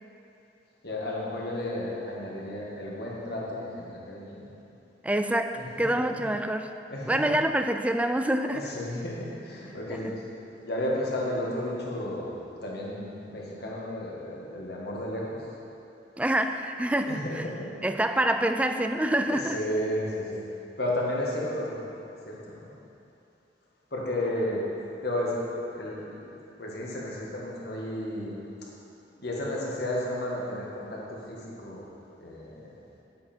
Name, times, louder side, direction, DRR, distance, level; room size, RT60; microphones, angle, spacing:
voice 1, 0.8-4.5 5.6-5.9 6.9-7.4 8.5-15.5 17.0-17.7 19.3-20.5 20.8-21.8 22.2-22.7 23.9-25.4 25.7-26.2 26.6-28.4 29.2-31.9 32.2-32.7, left 1 dB, 60° left, -4 dB, 1.8 m, -33 dB
voice 2, 5.0-6.7 7.1-8.7 9.9-10.0 16.2-17.4 17.8-19.6, right 1 dB, 5° right, 7 dB, 0.3 m, -26 dB
9.6 x 8.4 x 4.4 m, 2.8 s
head